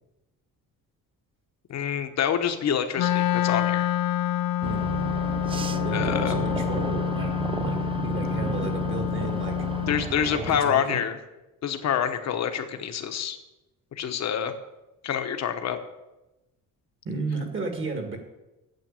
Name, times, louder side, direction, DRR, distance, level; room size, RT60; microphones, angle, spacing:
voice 1, 1.7-3.9 5.9-6.4 9.9-11.1 11.6-13.4 14.0-14.5 15.0-15.8, left 8 dB, 50° left, 7 dB, 1.1 m, -27 dB
Wind instrument woodwind instrument, 2.9-10.1, left 12 dB, 90° left, 0.6 m, -27 dB
sound 1, 4.6-10.6, right 5 dB, 15° right, 0.3 m, -32 dB
voice 2, 5.8-7.3 7.6-7.8 8.0-9.6 10.3-11.0 17.1-18.2, right 3 dB, 35° right, 4 dB, 1.9 m, -33 dB
9.3 x 7.8 x 8.7 m, 0.99 s
cardioid pair, 170°, 33 cm